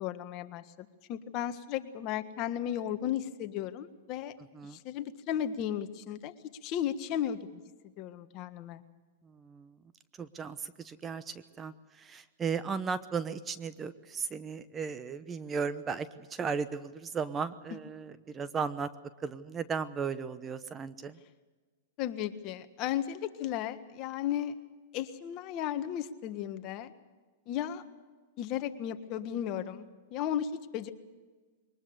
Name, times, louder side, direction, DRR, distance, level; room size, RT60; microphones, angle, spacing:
voice 1, 0.0-4.3 4.6-6.3 6.6-7.6 8.0-8.8 22.0-24.6 24.9-26.9 27.5-27.8 28.4-30.9, left 10 dB, 40° left, 9 dB, 1.5 m, -35 dB
voice 2, 9.2-9.7 10.2-18.9 19.2-21.2, right 6 dB, 20° right, 13 dB, 0.9 m, -36 dB
23.0 x 20.0 x 6.8 m, 1.3 s
hypercardioid pair, 130°, 0 cm